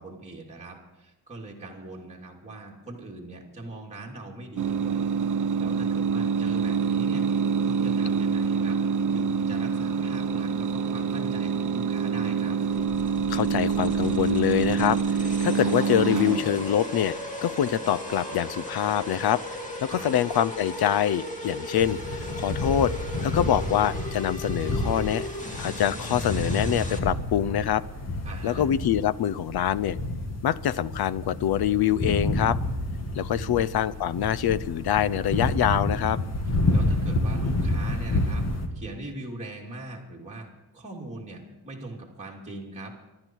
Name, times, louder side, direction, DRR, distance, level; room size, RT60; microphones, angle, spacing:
voice 1, 0.0-5.1 5.3-7.3 7.6-8.8 9.1-12.6 19.8-20.1 28.2-28.7 33.3-33.6 36.5-40.5 40.7-42.9, right 2 dB, 15° right, -2 dB, 2.6 m, -41 dB
sound 1, 4.6-16.9, right 6 dB, 50° right, 0.8 m, -26 dB
sound 2, 12.7-27.0, left 1 dB, 20° left, 2.3 m, -37 dB
voice 2, 13.3-22.9 23.2-25.3 25.5-27.8 28.4-30.0 30.4-32.6 33.1-36.2, left 10 dB, 70° left, 18 dB, 0.7 m, -25 dB
sound 3, 21.8-38.7, left 1 dB, 40° left, 2.2 m, -29 dB
26.0 x 12.0 x 4.6 m, 1.1 s
wide cardioid pair, 145°, 39 cm